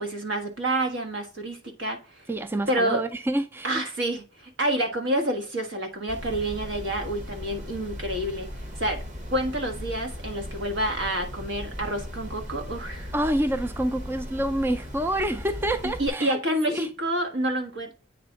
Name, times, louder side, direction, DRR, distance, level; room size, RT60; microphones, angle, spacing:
voice 1, 0.0-2.3 2.7-3.0 3.6-8.5 8.7-9.0 9.3-13.1 16.0-17.9, right 1 dB, 75° right, 1.3 m, -28 dB
voice 2, 2.3-3.8 13.1-16.9, right 1 dB, 10° right, 0.3 m, -27 dB
sound 1, 6.1-16.1, equal, 40° right, 1.2 m, -38 dB
8.6 x 3.4 x 3.9 m
head